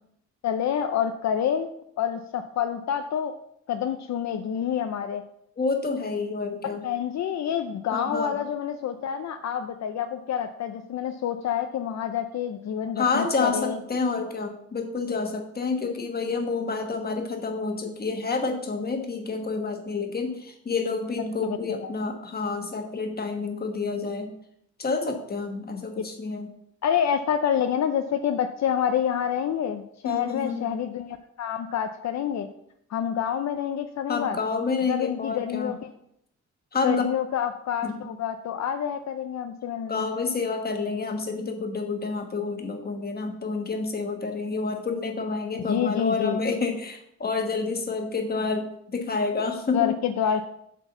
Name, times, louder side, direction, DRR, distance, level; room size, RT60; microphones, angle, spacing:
voice 1, 0.4-1.7 2.0-3.3 3.7-5.2 6.7-13.8 21.4-21.9 26.8-32.5 32.9-34.4 34.9-35.8 36.8-40.1 45.6-46.4 49.7-50.5, left 8 dB, 65° left, 7 dB, 0.6 m, -27 dB
voice 2, 5.6-6.8 7.9-8.3 13.0-24.3 24.8-26.5 30.0-30.7 34.1-35.7 36.7-37.0 37.8-38.1 39.9-49.9, left 4 dB, 35° left, 4 dB, 1.3 m, -29 dB
8.0 x 4.6 x 6.9 m, 0.74 s
wide cardioid pair, 145°, 29 cm